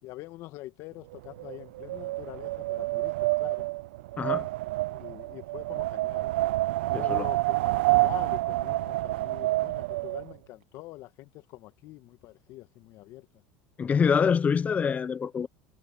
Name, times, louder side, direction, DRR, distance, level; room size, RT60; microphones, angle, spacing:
voice 1, 0.0-3.7 4.9-6.3 6.8-13.3, left 17 dB, 60° left, 2.0 m, -45 dB
Wind, 1.1-10.3, right 19 dB, 90° right, 0.3 m, -28 dB
voice 2, 4.2-4.5 6.9-7.3 13.8-15.5, left 6 dB, 25° left, 0.8 m, -25 dB
supercardioid pair, 115°, 6 cm